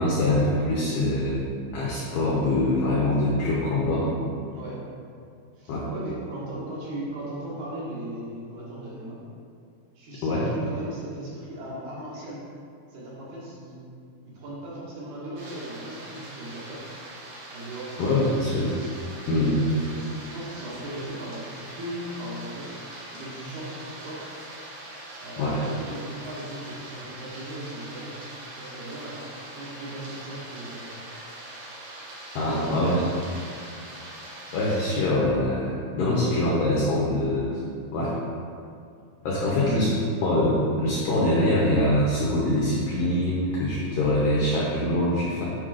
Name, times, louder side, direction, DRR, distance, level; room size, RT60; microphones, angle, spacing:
voice 1, 0.0-1.5 1.7-4.1 5.7-5.9 10.2-10.5 18.0-18.7 19.3-19.6 25.4-25.6 32.3-33.0 34.5-37.5 37.9-38.2 39.2-39.9 40.2-45.4, left 1 dB, 90° left, -6 dB, 1.9 m, -24 dB
voice 2, 5.6-9.2 10.0-12.4 12.9-13.8 14.2-16.9 17.5-18.2 19.2-22.7 23.1-24.3 25.2-28.2 28.6-31.0 32.4-33.1 39.3-39.9, right 1 dB, 65° right, -7 dB, 2.7 m, -37 dB
sound 1, 15.4-35.0, right 1 dB, 85° right, 1.6 m, -42 dB
9.5 x 5.5 x 2.5 m, 2.3 s
omnidirectional pair, 5.1 m